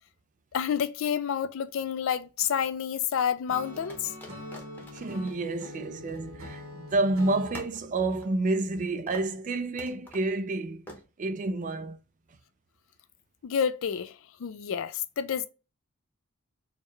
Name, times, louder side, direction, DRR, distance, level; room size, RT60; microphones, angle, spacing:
voice 1, 0.5-4.1 13.4-14.1 14.4-15.5, left 8 dB, 65° left, 0.4 m, -29 dB
sound 1, 1.7-2.6 3.8-6.7 7.0-7.1 7.5-8.8 9.1-9.4 9.8-10.3 10.9-11.0, left 1 dB, 10° left, 0.8 m, -48 dB
Acoustic guitar / Strum, 3.5-7.6, left 1 dB, 70° right, 1.1 m, -43 dB
voice 2, 4.9-10.8 11.2-12.0, right 2 dB, 35° right, 0.4 m, -29 dB
4.6 x 2.2 x 3.2 m
head